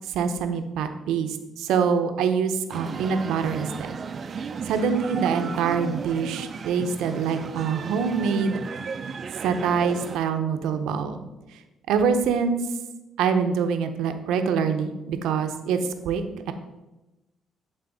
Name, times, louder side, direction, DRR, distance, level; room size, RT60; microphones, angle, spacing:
voice 1, 0.1-4.0 4.7-8.6 9.4-11.2 11.9-12.6 13.2-16.5, right 6 dB, 90° right, 7 dB, 0.7 m, -25 dB
sound 1, 2.7-10.2, right 5 dB, 45° right, 0.4 m, -34 dB
10.5 x 4.0 x 4.0 m, 1.0 s
cardioid pair, 90°, 0 cm